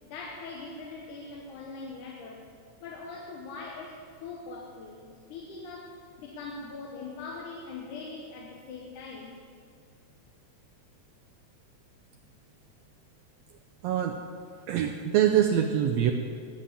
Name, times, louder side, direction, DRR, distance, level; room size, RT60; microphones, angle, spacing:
voice 1, 0.1-2.5 2.8-9.4, left 3 dB, 80° left, 0 dB, 2.5 m, -42 dB
voice 2, 13.8-14.2 14.7-16.1, right 10 dB, 80° right, 5 dB, 1.5 m, -24 dB
11.0 x 7.5 x 8.4 m, 2.3 s
omnidirectional pair, 3.5 m